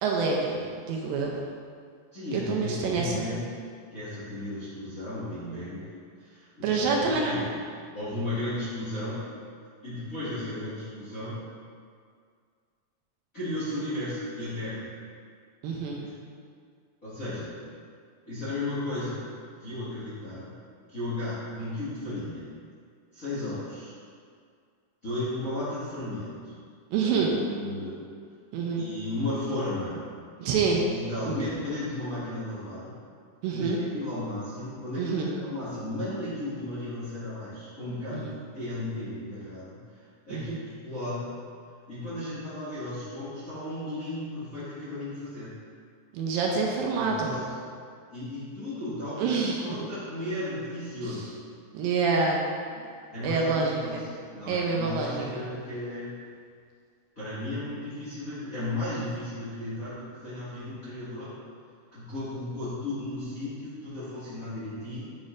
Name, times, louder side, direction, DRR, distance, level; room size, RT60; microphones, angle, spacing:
voice 1, 0.0-1.4 2.3-3.4 6.6-7.3 15.6-16.0 26.9-27.3 28.5-28.9 30.4-30.9 31.2-31.4 33.4-33.8 35.0-35.3 38.1-38.3 40.3-40.6 46.1-47.3 49.2-49.9 51.0-51.1 51.7-52.5 52.8-52.9 53.2-54.1 54.5-55.4, right 4 dB, 80° right, -1 dB, 2.3 m, -27 dB
voice 2, 2.1-3.5 3.9-5.9 6.2-7.6 7.9-9.2 9.8-11.4 13.3-14.9 16.0-16.1 17.0-17.5 18.3-19.2 19.6-20.5 20.9-22.5 23.1-23.9 25.0-26.5 27.0-28.0 28.8-30.0 30.9-32.9 33.5-41.3 41.9-45.5 47.0-47.5 48.1-51.3 53.1-54.0 54.3-56.1 57.1-61.3 61.9-65.1, left 1 dB, 35° left, -13 dB, 1.4 m, -34 dB
9.7 x 5.2 x 2.5 m, 2.1 s
omnidirectional pair, 4.3 m